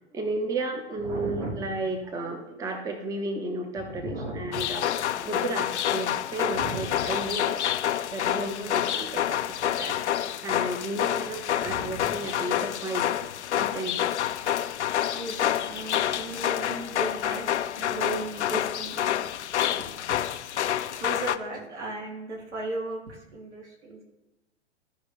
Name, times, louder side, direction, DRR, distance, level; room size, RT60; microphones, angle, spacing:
voice 1, 0.0-7.6 8.1-10.0 10.4-13.1 13.5-14.0 20.7-21.0, right 2 dB, 10° right, 5 dB, 0.7 m, -33 dB
voice 2, 1.0-1.6 3.8-4.5 6.5-7.1 11.6-12.1 15.1-19.2 19.7-19.8 20.6-24.0, right 2 dB, 75° right, -2 dB, 2.9 m, -36 dB
sound 1, 4.5-21.4, left 11 dB, 75° left, 0.5 m, -28 dB
13.0 x 5.1 x 3.3 m, 0.98 s
figure-of-eight pair, 110°, 35 cm